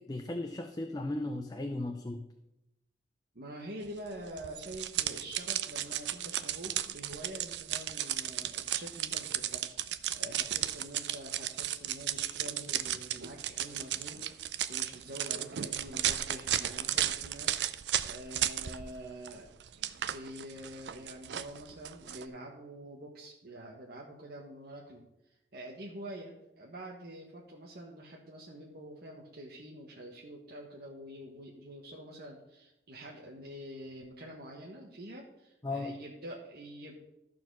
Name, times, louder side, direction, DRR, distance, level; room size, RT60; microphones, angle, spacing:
voice 1, 0.0-2.2 35.6-35.9, left 2 dB, 25° left, 4 dB, 0.6 m, -36 dB
voice 2, 3.3-19.5 19.7-25.0 25.5-37.0, right 1 dB, 60° right, -3 dB, 1.3 m, -46 dB
sound 1, 4.4-19.0 19.2-22.3, right 11 dB, 75° right, 0.5 m, -34 dB
13.5 x 4.6 x 6.1 m, 0.89 s
head